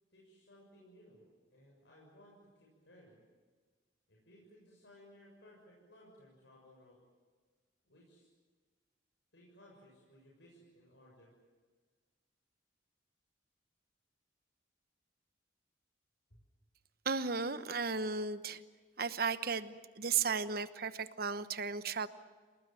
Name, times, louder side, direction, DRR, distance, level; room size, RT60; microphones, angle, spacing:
voice 1, 0.1-3.2 4.1-7.0 7.8-8.3 9.3-11.3 16.3-16.4, equal, 70° left, -3 dB, 6.9 m, -61 dB
voice 2, 17.0-18.6 19.0-22.1, right 5 dB, 50° right, 12 dB, 1.0 m, -35 dB
28.5 x 19.0 x 9.0 m, 1.5 s
head